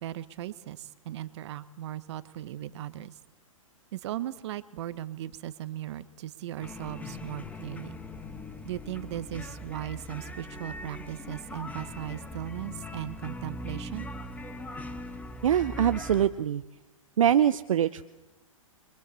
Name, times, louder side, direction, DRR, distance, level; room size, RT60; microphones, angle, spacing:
voice 1, 0.0-3.2 3.9-8.0 8.6-14.1, right 13 dB, 55° right, 15 dB, 1.2 m, -37 dB
sound 1, 6.6-16.3, left 2 dB, 10° left, 1.6 m, -40 dB
voice 2, 15.4-16.6 17.2-18.0, right 10 dB, 70° right, 13 dB, 0.7 m, -23 dB
30.0 x 23.5 x 4.3 m, 1.0 s
hypercardioid pair, 120°, 18 cm